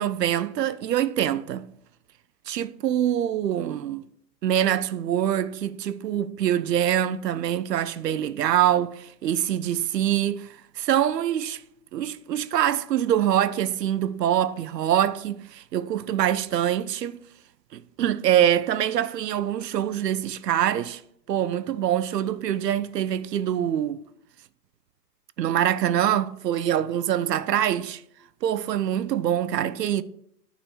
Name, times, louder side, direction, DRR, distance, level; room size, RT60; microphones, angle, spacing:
voice 1, 0.0-1.7 2.5-4.0 4.4-10.5 10.8-11.6 11.9-17.2 17.7-21.0 21.3-24.0 25.4-28.0 28.4-30.0, right 10 dB, 80° right, 0.7 m, -24 dB
9.2 x 4.0 x 4.9 m
hypercardioid pair, 145°, 48 cm